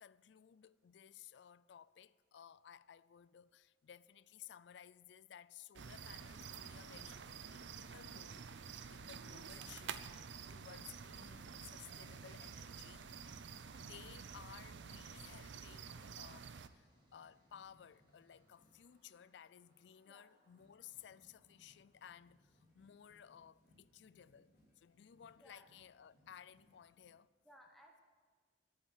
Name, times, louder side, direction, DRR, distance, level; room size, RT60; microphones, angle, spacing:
voice 1, 0.0-10.0 10.5-13.5 13.7-27.3, left 9 dB, 75° left, 0.4 m, -58 dB
sound 1, 5.8-16.7, right 6 dB, 85° right, 0.6 m, -50 dB
sound 2, 12.1-23.1, right 2 dB, 25° right, 2.2 m, -75 dB
sound 3, 15.6-27.1, left 1 dB, 60° left, 4.9 m, -73 dB
voice 2, 27.4-28.0, equal, ahead, 1.2 m, -62 dB
10.5 x 9.3 x 9.5 m
head